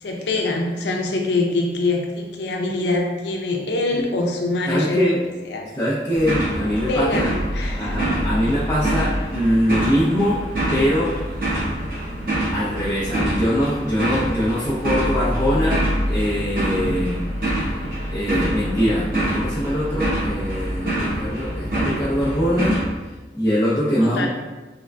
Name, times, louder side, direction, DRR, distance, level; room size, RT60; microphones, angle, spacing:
voice 1, 0.0-5.7 6.6-8.1 24.0-24.3, left 2 dB, 80° left, 1 dB, 0.6 m, -24 dB
voice 2, 4.7-5.2 5.8-7.3 7.8-10.4 10.7-11.2 12.5-17.3 17.7-22.8 23.3-24.3, equal, 20° left, -9 dB, 0.5 m, -22 dB
sound 1, 6.1-22.9, right 1 dB, 50° right, 1.1 m, -25 dB
3.6 x 3.3 x 2.2 m, 1.2 s
head